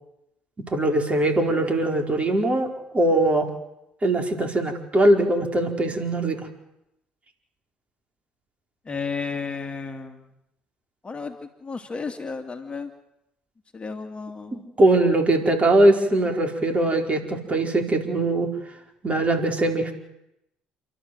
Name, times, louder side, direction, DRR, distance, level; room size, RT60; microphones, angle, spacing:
voice 1, 0.7-2.7 2.9-3.5 4.0-6.4 14.8-18.5 19.0-19.9, right 1 dB, 30° right, 4 dB, 4.9 m, -21 dB
voice 2, 8.8-10.2 11.0-12.9 13.7-14.6, left 4 dB, 25° left, 5 dB, 2.5 m, -33 dB
28.5 x 12.5 x 8.0 m, 0.84 s
hypercardioid pair, 60°, 4 cm